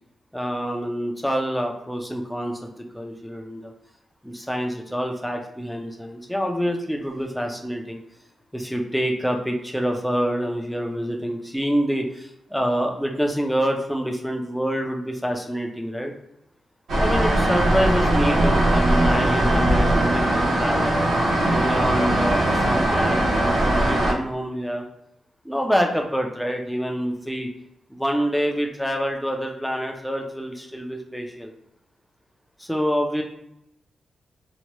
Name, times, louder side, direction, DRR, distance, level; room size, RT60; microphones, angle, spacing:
voice 1, 0.3-3.7 4.2-8.0 8.5-16.1 17.0-20.9 21.5-24.9 25.4-27.5 27.9-31.5 32.6-33.2, equal, ahead, 2 dB, 0.4 m, -26 dB
sound 1, 16.9-24.1, right 1 dB, 75° right, 0.7 m, -20 dB
2.8 x 2.2 x 3.0 m, 0.81 s
wide cardioid pair, 155°, 0 cm